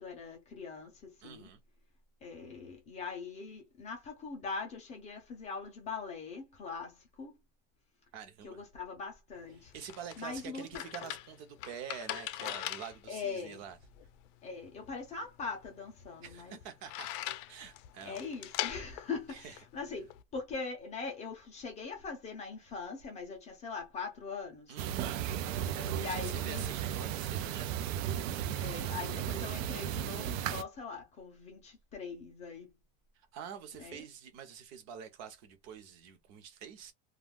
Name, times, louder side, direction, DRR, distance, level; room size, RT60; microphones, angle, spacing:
voice 1, 0.0-1.5 2.2-7.4 8.4-9.7 10.2-10.8 13.1-13.6 14.4-16.6 18.0-24.8 26.0-26.6 28.6-32.7 33.7-34.0, left 5 dB, 20° left, 0.4 m, -42 dB
voice 2, 1.2-1.6 8.1-8.6 9.5-13.8 16.2-17.1 17.4-18.2 19.3-19.6 24.7-25.2 25.7-28.2 33.1-36.9, right 8 dB, 45° right, 0.7 m, -47 dB
sound 1, 9.4-20.2, left 14 dB, 80° left, 0.5 m, -42 dB
sound 2, 24.8-30.6, right 10 dB, 90° right, 0.5 m, -35 dB
2.3 x 2.2 x 3.4 m
cardioid pair, 175°, 38 cm